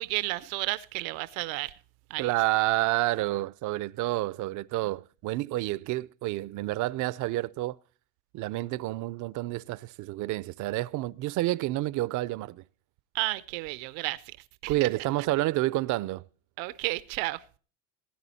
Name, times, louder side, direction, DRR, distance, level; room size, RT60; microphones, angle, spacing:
voice 1, 0.0-1.8 2.1-2.3 13.1-14.4 14.6-14.9 16.6-17.4, right 21 dB, 80° right, 0.7 m, -32 dB
voice 2, 2.2-7.8 8.3-12.6 14.7-16.2, right 18 dB, 45° right, 0.5 m, -29 dB
15.5 x 9.8 x 4.2 m
supercardioid pair, 115°, 42 cm